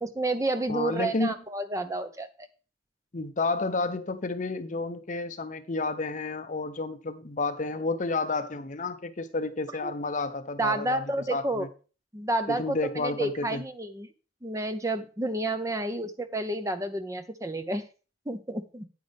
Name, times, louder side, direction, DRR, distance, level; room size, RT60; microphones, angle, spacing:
voice 1, 0.0-2.5 9.8-9.9 10.6-11.7 12.1-14.1 14.4-17.8 18.3-18.9, right 2 dB, 15° right, 0.8 m, -30 dB
voice 2, 0.7-1.3 3.1-11.7 12.5-13.6, left 3 dB, 40° left, 0.8 m, -31 dB
9.5 x 9.4 x 3.5 m
head